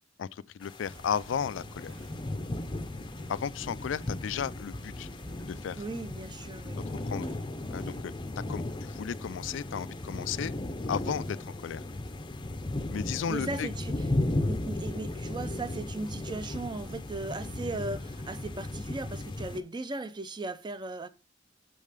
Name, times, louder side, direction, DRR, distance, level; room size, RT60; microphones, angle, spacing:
voice 1, 0.2-1.9 3.3-5.1 5.5-5.8 7.1-7.3 7.7-8.1 8.5-10.5 10.9-11.4 11.6-11.8 12.9-13.7, left 7 dB, 70° left, 0.3 m, -34 dB
sound 1, 0.6-19.6, left 1 dB, 25° left, 0.6 m, -36 dB
sound 2, 0.8-8.0, right 1 dB, 85° right, 1.5 m, -53 dB
voice 2, 5.8-6.8 13.3-13.9 14.2-21.1, right 2 dB, 25° right, 0.5 m, -37 dB
6.5 x 5.5 x 4.9 m
head